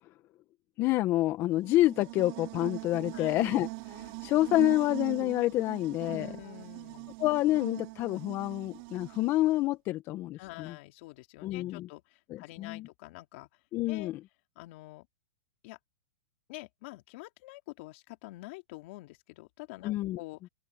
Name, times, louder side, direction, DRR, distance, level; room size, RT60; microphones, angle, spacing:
voice 1, 0.8-6.3 7.2-10.7 11.4-11.9 12.3-12.9 13.7-14.2 19.8-20.2, left 16 dB, 35° left, 1.7 m, -28 dB
Buzz, 1.5-9.7, right 31 dB, 45° right, 5.8 m, -42 dB
voice 2, 6.1-7.1 10.4-13.5 13.9-14.1 14.6-15.1 15.6-15.8 16.5-20.4, left 21 dB, 50° left, 2.8 m, -46 dB
hypercardioid pair, 130°, 8 cm